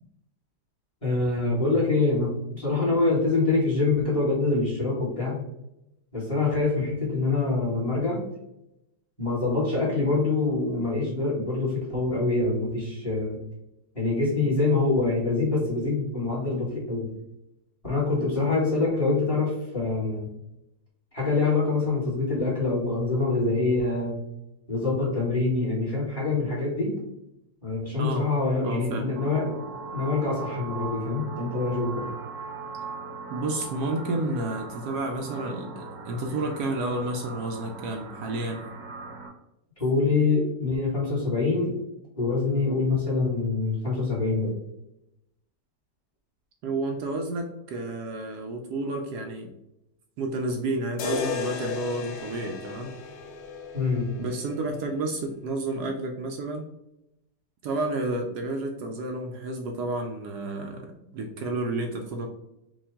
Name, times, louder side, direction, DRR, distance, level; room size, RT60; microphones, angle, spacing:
voice 1, 1.0-5.4 6.1-8.2 9.2-13.4 13.9-17.1 17.8-20.3 21.1-24.2 24.7-26.9 27.6-29.5 29.9-32.1 39.8-41.8 42.2-44.5 53.7-54.1, left 3 dB, 20° left, -6 dB, 1.7 m, -25 dB
voice 2, 28.6-29.1 33.3-38.7 46.6-49.5 50.2-52.9 54.2-56.6 57.6-62.3, right 2 dB, 75° right, 3 dB, 1.1 m, -31 dB
sound 1, 29.2-39.3, right 4 dB, 90° right, 1.6 m, -39 dB
sound 2, 51.0-55.1, left 7 dB, 80° left, 1.3 m, -35 dB
5.1 x 2.5 x 3.5 m, 0.86 s
omnidirectional pair, 1.9 m